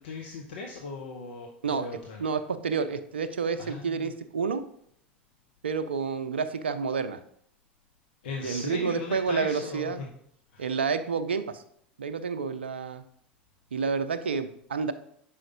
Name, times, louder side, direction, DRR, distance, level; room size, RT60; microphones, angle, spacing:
voice 1, 0.0-2.2 3.6-4.1 8.2-10.1 10.5-10.7, left 4 dB, 65° left, 1 dB, 0.8 m, -38 dB
voice 2, 2.2-4.7 5.6-7.2 8.4-10.0 10.6-11.6 12.0-13.0 13.7-14.9, right 5 dB, 80° right, 11 dB, 0.5 m, -29 dB
5.7 x 5.0 x 5.1 m, 0.67 s
figure-of-eight pair, 80°, 6 cm